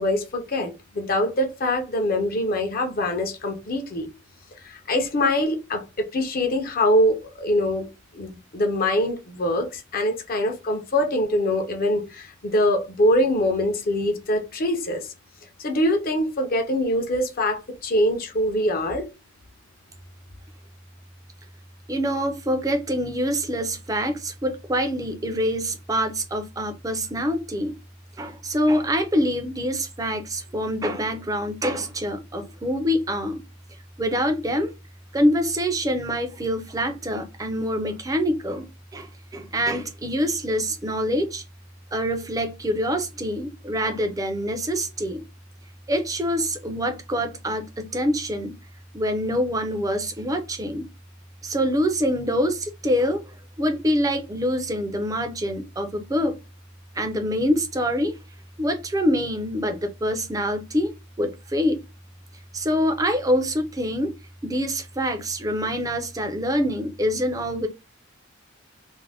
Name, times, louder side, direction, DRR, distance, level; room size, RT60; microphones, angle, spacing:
voice 1, 0.0-4.1 4.6-7.9 8.1-15.1 15.6-19.1, left 1 dB, 45° left, 0.5 m, -23 dB
voice 2, 21.9-27.7 28.2-33.4 34.0-34.7 35.1-41.4 41.9-45.2 45.9-48.6 48.9-50.9 51.4-53.2 53.6-56.4 57.0-58.1 58.6-60.9 61.2-61.8 62.5-64.1 64.4-67.7, equal, 15° right, 0.4 m, -25 dB
2.5 x 2.1 x 3.3 m
head